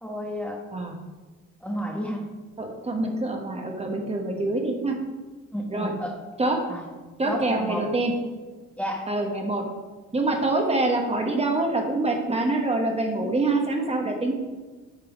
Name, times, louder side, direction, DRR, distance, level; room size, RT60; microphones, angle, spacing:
voice 1, 0.0-0.6 1.6-2.3 5.5-6.1 6.7-6.8 7.2-7.9 8.8-9.1, equal, 5° left, 0 dB, 1.2 m, -31 dB
voice 2, 2.6-5.0 5.7-5.9 6.4-6.6 7.2-8.1 9.1-9.6 10.1-14.4, right 2 dB, 20° right, 2 dB, 1.3 m, -25 dB
9.0 x 5.4 x 5.2 m, 1.3 s
cardioid pair, 115°, 32 cm